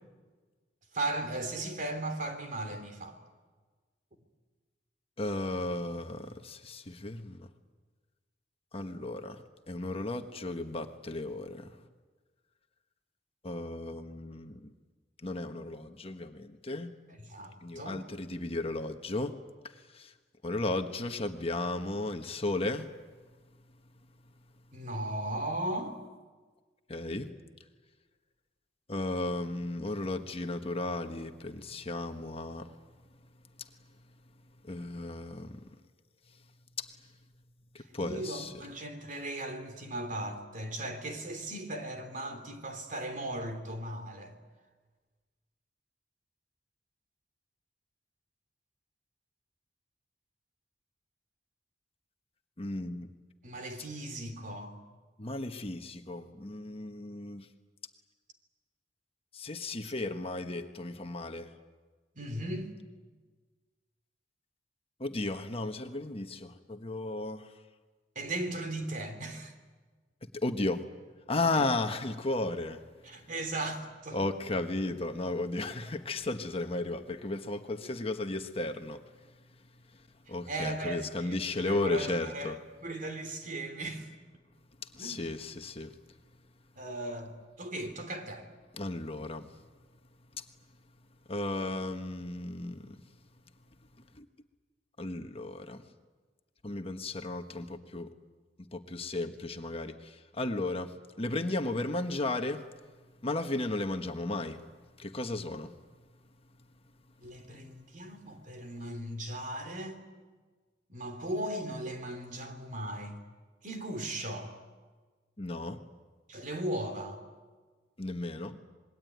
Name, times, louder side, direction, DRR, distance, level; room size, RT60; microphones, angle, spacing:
voice 1, 0.9-3.2 17.2-18.0 24.7-26.0 38.0-44.3 53.4-54.8 59.8-59.9 62.1-62.7 68.1-69.5 71.5-71.7 73.0-74.2 80.5-84.1 85.0-85.2 86.8-88.5 107.2-110.0 110.9-113.2 113.6-114.5 116.3-117.2, right 1 dB, 45° right, 3.1 m, -37 dB
voice 2, 5.2-7.5 8.7-11.8 13.4-14.7 15.2-16.9 17.6-19.3 19.6-20.1 20.4-22.9 26.9-27.3 28.9-32.7 34.6-35.7 36.8-36.9 37.7-38.5 52.6-53.1 53.8-53.9 55.2-57.5 59.3-61.5 65.0-67.5 70.4-70.8 71.3-72.8 73.1-73.2 74.1-79.0 79.9-80.0 80.3-82.6 84.9-86.0 88.7-89.5 90.4-90.5 91.3-93.0 94.1-94.3 95.0-95.8 96.6-98.1 98.7-102.6 103.2-104.6 105.0-105.7 115.4-115.8 118.0-118.6, left 2 dB, 35° left, 1.3 m, -34 dB
26.5 x 21.0 x 9.4 m
head